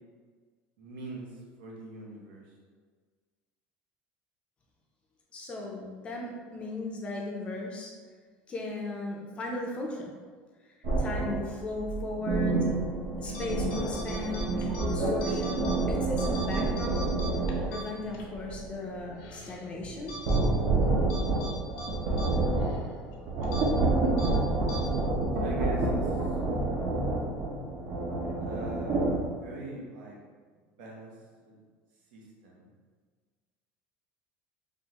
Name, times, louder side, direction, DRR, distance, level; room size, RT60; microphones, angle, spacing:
voice 1, 0.8-1.3 1.6-2.4 25.4-26.2 28.4-30.2 30.8-31.1 31.4-31.6 32.1-32.7, right 2 dB, 90° right, -3 dB, 0.8 m, -42 dB
voice 2, 5.3-7.9 8.5-10.1 11.0-12.8 13.2-17.1 17.7-20.1, left 2 dB, 25° left, -1 dB, 0.4 m, -36 dB
sound 1, 10.8-17.7 18.0-29.2, right 2 dB, 55° right, 0.6 m, -28 dB
sound 2, 13.3-13.4 13.7-14.8 15.2-15.8 16.1-18.3 18.6-18.7 19.2-19.6 20.1-20.4 21.1-21.5 21.8-21.9 22.2-22.3 22.6-22.8 23.4-23.6 24.2-24.3 24.7-24.8, right 1 dB, 75° left, 0.5 m, -41 dB
3.5 x 2.4 x 2.8 m, 1.5 s
cardioid pair, 160°, 5 cm